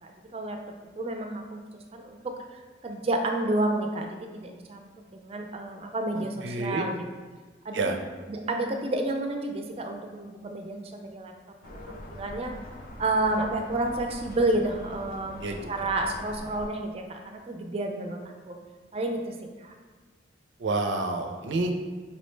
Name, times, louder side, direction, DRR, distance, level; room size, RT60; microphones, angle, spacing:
voice 1, 0.0-0.6 1.0-7.0 7.6-7.9 8.3-11.3 11.7-12.5 13.0-18.2 18.5-18.6 18.9-19.7, right 2 dB, 35° right, 3 dB, 0.4 m, -30 dB
voice 2, 6.1-6.8 7.7-7.9 15.4-15.6 20.6-21.7, right 3 dB, 90° right, 5 dB, 0.4 m, -29 dB
sound 1, 11.6-16.7, left 1 dB, 50° left, 0.4 m, -43 dB
5.2 x 2.1 x 3.1 m, 1.4 s
head